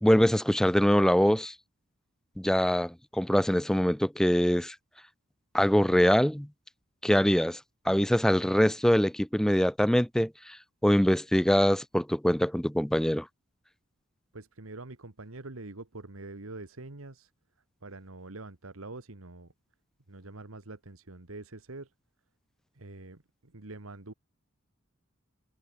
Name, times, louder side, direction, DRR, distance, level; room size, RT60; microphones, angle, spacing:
voice 1, 0.0-1.5 2.4-4.7 5.5-6.5 7.0-7.6 7.9-10.3 10.8-13.3, equal, 5° left, 0.5 m, -23 dB
voice 2, 14.3-17.3 17.8-19.5 20.1-21.9 22.7-24.1, right 2 dB, 75° right, 1.7 m, -45 dB
head